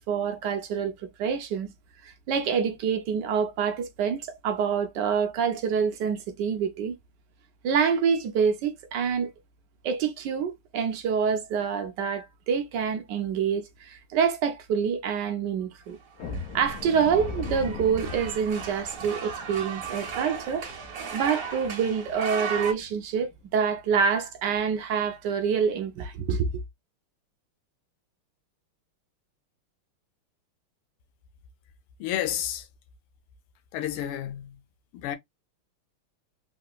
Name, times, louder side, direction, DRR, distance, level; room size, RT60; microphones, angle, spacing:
voice 1, 0.0-1.7 2.0-7.0 7.6-9.3 9.8-16.0 16.5-20.7 21.1-26.6, right 6 dB, 70° right, 1.1 m, -27 dB
sound 1, 16.2-22.9 23.3-23.4 23.9-24.0 24.5-24.7, left 3 dB, 65° left, 1.0 m, -40 dB
sound 2, 16.2-22.7, right 6 dB, 55° right, 1.0 m, -36 dB
voice 2, 32.0-32.7 33.7-34.6 34.9-35.2, left 11 dB, 85° left, 1.5 m, -31 dB
3.7 x 2.8 x 2.2 m
omnidirectional pair, 2.3 m